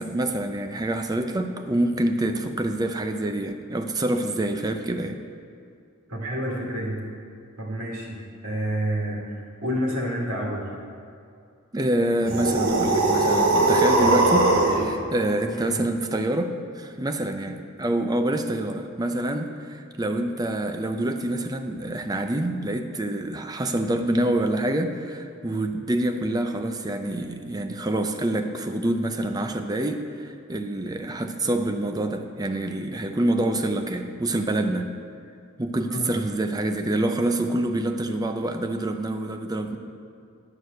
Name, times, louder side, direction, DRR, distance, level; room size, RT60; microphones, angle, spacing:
voice 1, 0.0-5.2 11.7-34.9 35.6-39.8, right 1 dB, 20° right, 6 dB, 0.5 m, -26 dB
voice 2, 6.1-7.0 7.6-8.2 8.4-10.6 15.5-15.8 35.9-36.2, equal, 80° right, -4 dB, 2.3 m, -29 dB
sound 1, 12.2-14.9, right 2 dB, 60° right, 1.9 m, -20 dB
10.5 x 4.8 x 7.8 m, 2.4 s
head